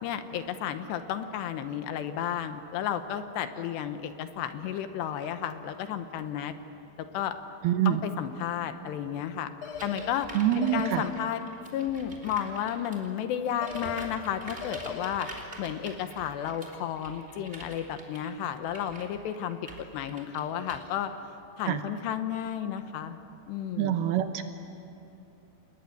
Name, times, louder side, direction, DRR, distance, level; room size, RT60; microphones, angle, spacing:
voice 1, 0.0-6.5 7.0-7.4 7.9-9.5 9.8-10.3 10.6-11.4 11.7-15.3 15.6-21.1 21.6-23.2 23.5-24.0, left 9 dB, 80° left, 9 dB, 3.0 m, -32 dB
voice 2, 7.6-8.0 10.3-11.0 21.7-21.8 23.8-24.4, right 11 dB, 75° right, 8 dB, 2.5 m, -25 dB
sound 1, 9.6-10.1 10.6-11.1 13.6-14.1 14.6-15.1, left 7 dB, 55° left, 2.5 m, -39 dB
sound 2, 9.7-13.1 13.6-20.8, right 1 dB, 15° right, 2.7 m, -46 dB
29.0 x 20.0 x 9.5 m, 2.8 s
omnidirectional pair, 5.3 m